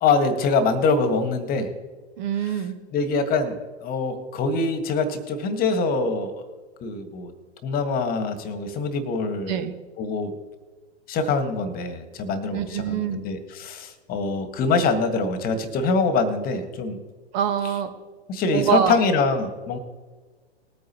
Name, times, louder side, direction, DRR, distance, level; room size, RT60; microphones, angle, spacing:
voice 1, 0.0-1.7 2.9-3.6 3.8-6.4 6.8-7.3 7.6-9.6 10.0-10.3 11.1-17.0 18.3-19.8, left 4 dB, 25° left, 9 dB, 1.7 m, -24 dB
voice 2, 2.2-2.8 9.5-9.7 12.5-13.2 17.3-17.9 18.5-19.0, right 8 dB, 40° right, 7 dB, 1.5 m, -24 dB
20.5 x 9.3 x 3.0 m, 1.4 s
figure-of-eight pair, 110°, 34 cm